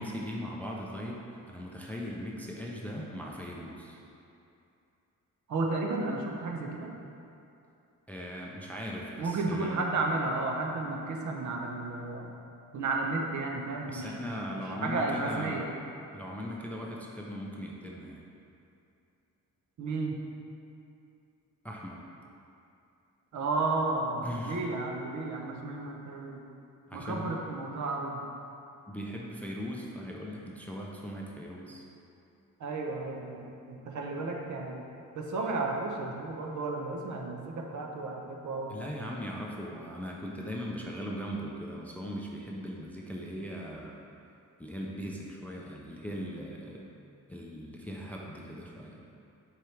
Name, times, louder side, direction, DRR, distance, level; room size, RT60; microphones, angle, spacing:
voice 1, 0.0-4.0 8.1-9.8 13.9-15.6 16.1-18.2 21.6-22.0 24.2-24.6 26.9-27.3 28.9-31.8 38.7-44.0 44.6-46.9 47.3-49.2, equal, 5° left, -2 dB, 0.4 m, -39 dB
voice 2, 5.5-6.9 9.2-12.3 12.7-14.3 14.8-15.7 19.8-20.2 23.3-26.4 26.9-28.2 32.6-34.8 35.1-38.8, right 3 dB, 60° right, 0 dB, 0.8 m, -33 dB
7.7 x 4.8 x 3.2 m, 2.7 s
wide cardioid pair, 170°, 33 cm